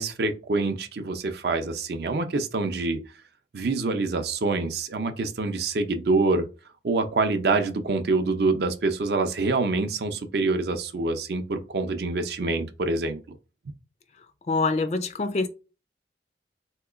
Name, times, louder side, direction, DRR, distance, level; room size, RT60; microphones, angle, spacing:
voice 1, 0.0-3.0 3.5-6.5 6.8-13.2, right 3 dB, 60° right, 0.5 m, -26 dB
voice 2, 14.5-15.5, left 3 dB, 35° left, 0.4 m, -25 dB
3.6 x 2.8 x 2.4 m
head